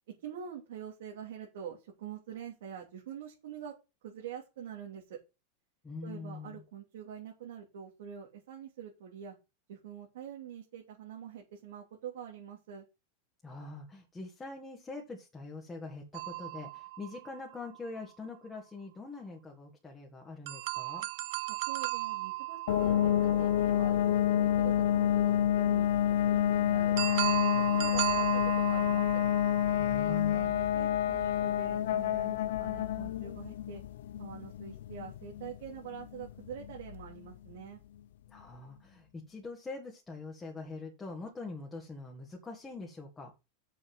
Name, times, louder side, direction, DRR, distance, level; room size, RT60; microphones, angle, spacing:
voice 1, 0.2-3.7 4.0-5.2 6.0-9.3 9.7-12.8 21.7-25.9 26.2-29.2 30.0-33.8 34.2-37.8, right 8 dB, 80° right, -2 dB, 3.1 m, -45 dB
voice 2, 5.8-6.5 13.4-21.1 29.8-30.5 38.3-43.3, left 3 dB, 10° left, 0 dB, 2.0 m, -44 dB
sound 1, 16.1-17.9 20.5-24.4 27.0-30.4, right 20 dB, 60° right, 0.5 m, -36 dB
sound 2, 22.7-37.3, left 11 dB, 80° left, 0.8 m, -29 dB
7.0 x 6.4 x 7.8 m, 0.27 s
supercardioid pair, 155°, 0 cm